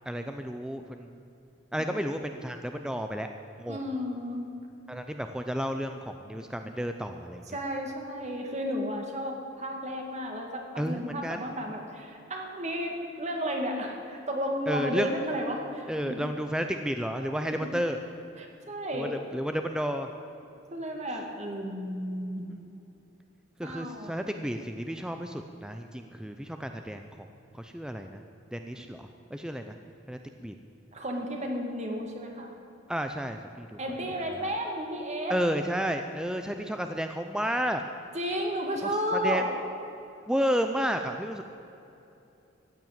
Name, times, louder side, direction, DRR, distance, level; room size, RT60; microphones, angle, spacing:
voice 1, 0.1-1.2 1.7-3.3 3.6-3.8 4.9-7.6 10.8-11.5 14.7-15.1 15.9-18.0 18.9-20.1 23.6-27.0 27.5-28.2 28.5-29.8 30.1-30.6 32.9-33.8 34.4-34.5 35.3-37.8 38.8-39.5 40.3-41.4, equal, 5° right, 6 dB, 0.5 m, -32 dB
voice 2, 3.7-4.5 6.2-6.7 7.5-16.3 17.6-17.7 18.4-19.1 20.7-22.5 23.6-24.2 30.9-32.6 33.8-35.4 38.1-39.5, equal, 35° right, 2 dB, 2.0 m, -33 dB
15.0 x 9.0 x 8.9 m, 2.8 s
head